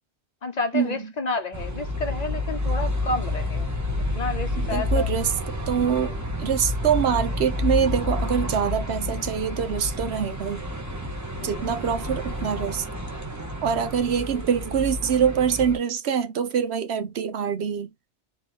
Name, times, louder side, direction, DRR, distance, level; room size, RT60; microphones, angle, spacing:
voice 1, 0.4-3.7 4.1-5.1 5.9-6.2 11.4-11.7, left 3 dB, 45° left, 0.7 m, -30 dB
sound 1, 1.5-15.8, left 1 dB, 15° right, 1.1 m, -29 dB
voice 2, 4.6-5.3 5.7-6.1 6.4-10.6 11.4-12.9 13.6-17.9, right 7 dB, 80° right, 1.0 m, -24 dB
3.8 x 3.6 x 2.8 m
omnidirectional pair, 1.1 m